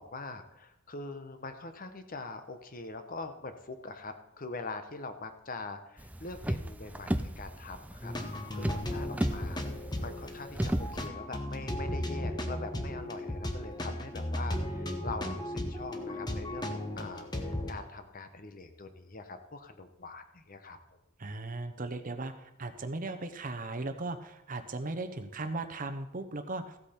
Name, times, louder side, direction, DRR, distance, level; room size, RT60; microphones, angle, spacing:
voice 1, 0.0-20.8, left 3 dB, 45° left, 8 dB, 1.0 m, -43 dB
sound 1, 6.0-11.1, right 1 dB, 5° right, 0.5 m, -34 dB
sound 2, 8.0-17.7, left 1 dB, 20° left, 1.1 m, -36 dB
voice 2, 21.2-26.8, right 2 dB, 40° right, 8 dB, 0.8 m, -37 dB
15.0 x 8.2 x 4.4 m, 0.88 s
head